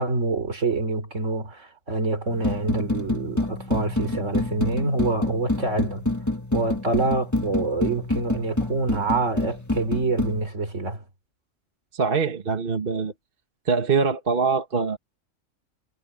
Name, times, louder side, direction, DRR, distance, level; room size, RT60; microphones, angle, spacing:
voice 1, 0.0-6.0 6.5-11.0, right 3 dB, 70° right, 3.6 m, -26 dB
sound 1, 2.3-10.5, left 2 dB, 15° left, 1.7 m, -27 dB
voice 2, 11.9-13.1 13.6-15.0, right 5 dB, 45° right, 1.5 m, -23 dB
omnidirectional pair, 1.3 m